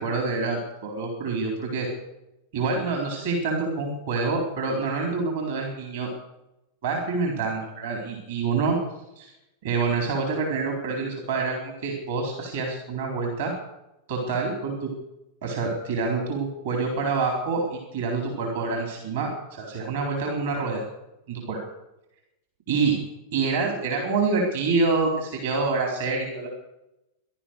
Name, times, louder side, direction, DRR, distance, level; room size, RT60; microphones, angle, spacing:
voice 1, 0.0-1.9 2.5-6.1 6.8-8.8 9.2-9.3 9.6-13.5 14.1-14.9 15.4-20.9 21.3-21.6 22.7-23.0 23.3-26.5, right 4 dB, 60° right, 1 dB, 4.0 m, -27 dB
17.5 x 12.0 x 6.6 m, 0.91 s
figure-of-eight pair, 90°, 0 cm